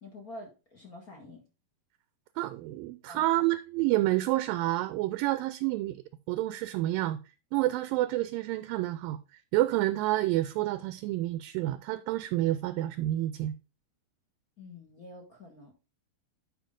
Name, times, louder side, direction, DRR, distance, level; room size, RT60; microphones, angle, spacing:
voice 1, 0.0-1.4 3.1-3.3 14.6-15.7, left 1 dB, 40° left, 1.3 m, -47 dB
voice 2, 2.4-7.2 7.5-9.2 9.5-13.5, right 16 dB, 80° right, 2.2 m, -29 dB
10.5 x 4.9 x 3.7 m
omnidirectional pair, 4.3 m